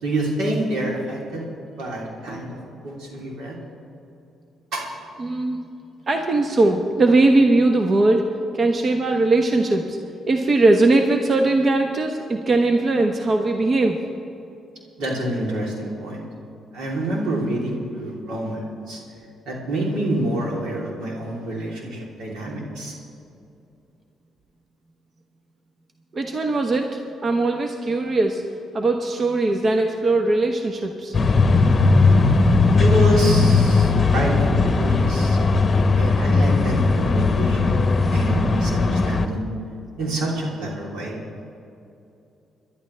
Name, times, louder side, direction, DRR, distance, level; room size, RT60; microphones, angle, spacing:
voice 1, 0.0-1.4 1.8-2.6 2.8-3.5 4.7-4.8 15.0-16.2 16.7-19.0 19.5-22.9 32.8-35.4 35.9-39.4 40.0-41.2, right 1 dB, 85° right, -2 dB, 3.3 m, -27 dB
voice 2, 5.2-5.6 6.1-8.2 8.5-10.0 10.3-14.0 26.1-28.4 28.7-31.1, right 2 dB, 40° right, 4 dB, 1.0 m, -20 dB
sound 1, 31.1-39.3, left 3 dB, 35° left, 1.0 m, -18 dB
23.0 x 11.5 x 3.3 m, 2.7 s
cardioid pair, 90°, 0 cm